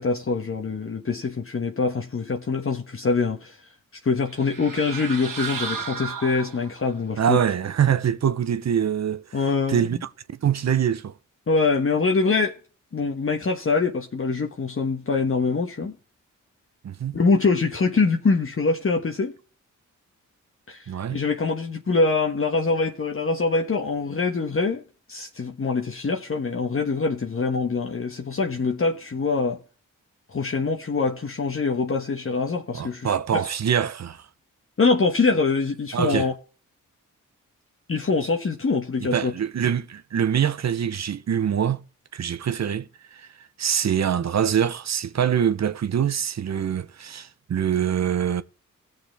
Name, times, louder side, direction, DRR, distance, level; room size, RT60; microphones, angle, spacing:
voice 1, 0.0-3.6 4.0-7.4 9.3-9.9 11.5-12.5 12.9-15.9 17.1-19.3 20.7-24.8 25.1-29.6 30.3-33.4 34.8-36.3 37.9-39.3, left 4 dB, 40° left, 1.3 m, -24 dB
sound 1, 4.3-6.9, right 6 dB, 75° right, 1.8 m, -33 dB
voice 2, 7.2-9.4 9.7-10.1 10.4-11.2 16.8-17.2 20.9-21.2 32.7-34.3 35.9-36.3 39.0-41.8 42.1-43.3 43.6-48.4, right 8 dB, 55° right, 0.8 m, -24 dB
17.0 x 6.7 x 3.5 m
supercardioid pair, 50°, 32 cm